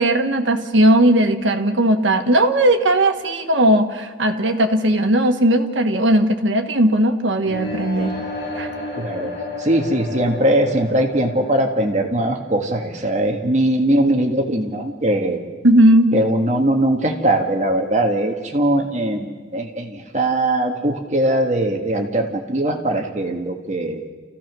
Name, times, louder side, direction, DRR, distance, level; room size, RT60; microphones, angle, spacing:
voice 1, 0.0-8.2 8.6-8.7 15.6-16.1, right 1 dB, 80° right, 5 dB, 1.6 m, -17 dB
sound 1, 7.4-13.3, left 2 dB, 50° left, 6.5 m, -32 dB
voice 2, 9.0-9.3 9.6-15.4 16.1-24.0, right 1 dB, 35° right, 3 dB, 1.8 m, -20 dB
29.0 x 15.5 x 6.3 m, 1.4 s
head